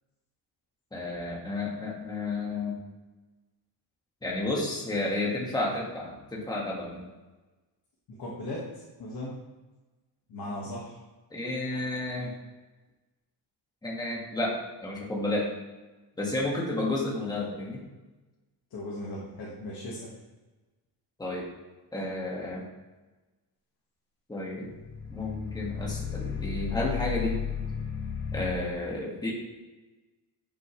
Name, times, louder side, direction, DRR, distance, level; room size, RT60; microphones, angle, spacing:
voice 1, 0.9-2.8 4.2-7.0 11.3-12.3 13.8-15.5 16.2-17.8 21.2-21.5 21.9-22.7 24.3-24.8 25.1-27.4 28.3-29.3, left 2 dB, 10° left, -3 dB, 1.8 m, -31 dB
voice 2, 8.1-8.7 9.0-9.4 10.3-11.0 18.7-20.1, left 1 dB, 55° left, -5 dB, 1.8 m, -37 dB
sound 1, 24.7-28.5, left 7 dB, 85° left, 3.0 m, -34 dB
9.9 x 6.6 x 3.2 m, 1.2 s
cardioid pair, 155°, 41 cm